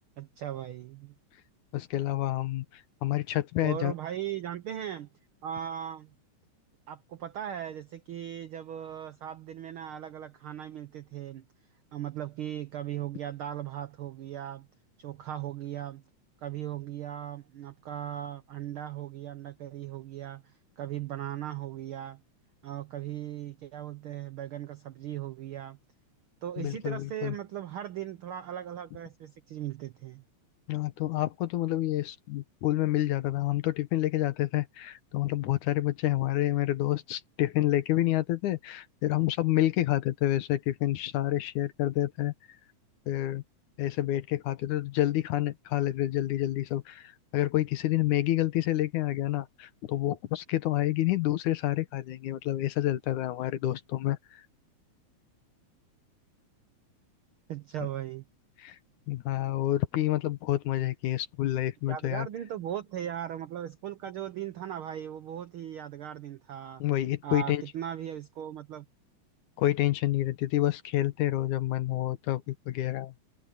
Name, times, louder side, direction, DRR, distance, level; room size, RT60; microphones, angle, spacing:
voice 1, 0.2-1.1 3.6-5.1 5.4-6.1 6.9-11.4 11.9-14.7 15.0-16.0 16.4-22.2 22.6-25.8 26.4-30.2 57.5-58.2 61.9-66.8 67.2-68.8, right 11 dB, 80° right, 1.2 m, -38 dB
voice 2, 1.7-3.9 26.6-27.4 30.7-42.3 43.1-43.4 43.8-54.4 58.6-58.8 59.1-62.3 66.8-67.6 69.6-73.1, left 14 dB, 85° left, 2.5 m, -28 dB
omnidirectional pair, 3.4 m